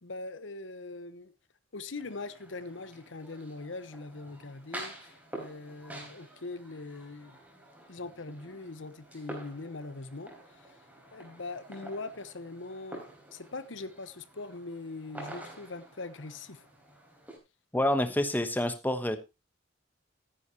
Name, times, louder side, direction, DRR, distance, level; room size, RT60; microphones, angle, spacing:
voice 1, 0.0-1.3 1.7-7.4 7.9-10.3 11.1-16.6, left 3 dB, 70° left, 1.0 m, -41 dB
sound 1, 2.0-17.4, right 1 dB, 10° right, 4.0 m, -48 dB
voice 2, 17.7-19.2, left 1 dB, 10° left, 1.0 m, -27 dB
14.5 x 10.0 x 2.9 m
head